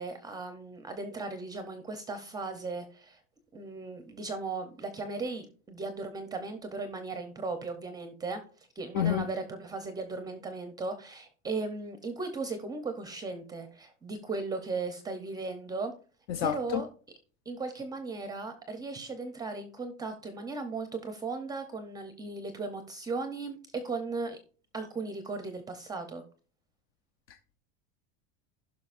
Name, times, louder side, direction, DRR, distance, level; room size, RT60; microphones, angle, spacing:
voice 1, 0.0-3.2 3.5-15.9 16.4-16.9 17.5-24.4 24.7-26.2, right 3 dB, 10° right, 0.6 m, -37 dB
voice 2, 8.9-9.3 16.3-16.8 27.3-27.6, left 10 dB, 45° left, 0.5 m, -30 dB
16.0 x 5.8 x 2.4 m
cardioid pair, 170°, 31 cm